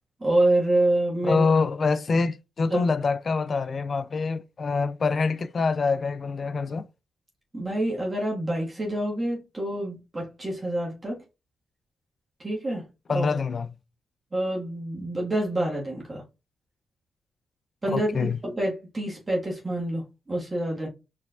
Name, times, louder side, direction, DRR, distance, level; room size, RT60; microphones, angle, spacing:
voice 1, 0.2-1.5 2.7-2.8 7.5-11.2 12.4-12.9 13.1-13.3 14.3-16.2 17.8-20.9, right 1 dB, 25° right, 1.5 m, -27 dB
voice 2, 1.2-6.8 13.1-13.7 17.9-18.4, left 4 dB, 50° left, 0.4 m, -25 dB
4.5 x 3.4 x 2.4 m
cardioid pair, 65°, 0 cm